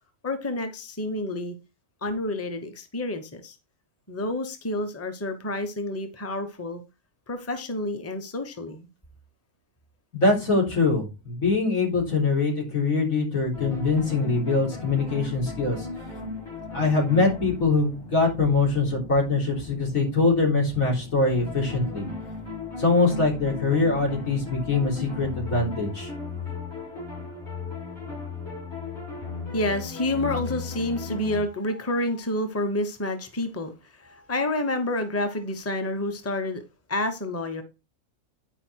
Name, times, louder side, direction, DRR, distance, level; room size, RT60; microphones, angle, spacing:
voice 1, 0.2-1.5 2.0-3.6 4.1-6.8 7.3-8.9 29.5-36.6 36.9-37.6, left 2 dB, 10° left, 1.0 m, -29 dB
voice 2, 10.1-15.9 16.7-22.1 22.8-26.1, left 3 dB, 80° left, 4.2 m, -23 dB
sound 1, 13.5-31.4, left 4 dB, 55° left, 6.5 m, -36 dB
9.9 x 4.9 x 4.6 m
omnidirectional pair, 1.4 m